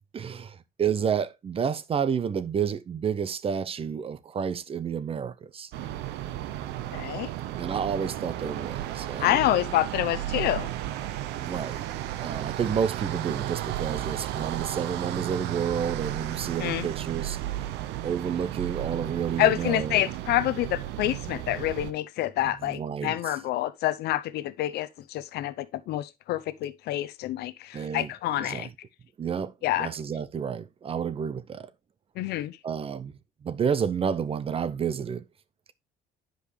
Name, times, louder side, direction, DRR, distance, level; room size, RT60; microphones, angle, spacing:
voice 1, 0.1-5.7 7.6-9.4 11.4-11.8 12.2-17.4 18.0-20.1 22.6-23.3 27.7-28.1 28.4-28.7 29.2-29.5 29.8-31.7 32.6-33.1 33.4-35.2, right 7 dB, 35° right, 0.6 m, -30 dB
sound 1, 5.7-21.9, right 13 dB, 85° right, 0.6 m, -34 dB
voice 2, 6.9-7.3 9.2-10.7 16.6-16.9 19.4-28.7 29.6-29.9 32.2-32.6, left 14 dB, 75° left, 0.7 m, -27 dB
10.0 x 5.2 x 3.2 m
cardioid pair, 110°, 17 cm